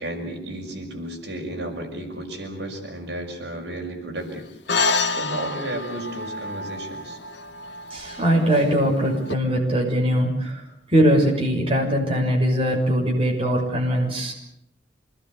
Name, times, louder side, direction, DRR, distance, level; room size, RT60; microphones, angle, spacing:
voice 1, 0.0-7.2, right 1 dB, 70° right, 2 dB, 6.5 m, -33 dB
sound 1, 4.7-9.3, left 3 dB, 90° left, 1.3 m, -28 dB
voice 2, 7.9-10.6 10.9-14.3, equal, 30° right, 0 dB, 6.7 m, -21 dB
27.5 x 20.5 x 8.2 m, 0.74 s
head